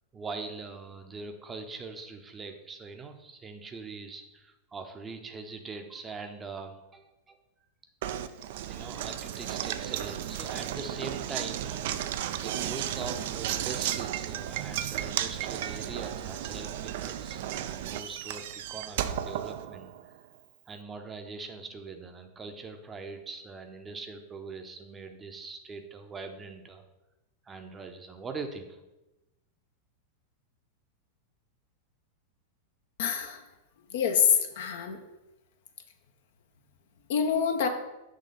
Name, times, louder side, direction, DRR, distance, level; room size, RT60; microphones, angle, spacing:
voice 1, 0.1-7.4 8.7-11.8 12.4-19.9 20.7-26.8 27.4-28.8, right 4 dB, 20° right, 5 dB, 0.7 m, -42 dB
Knock, 8.0-20.2, right 11 dB, 55° right, 0.3 m, -34 dB
voice 2, 33.0-33.4 33.9-35.0 37.1-37.7, left 7 dB, 55° left, 6 dB, 0.7 m, -26 dB
6.4 x 3.2 x 5.4 m, 0.97 s
figure-of-eight pair, 90°, 0 cm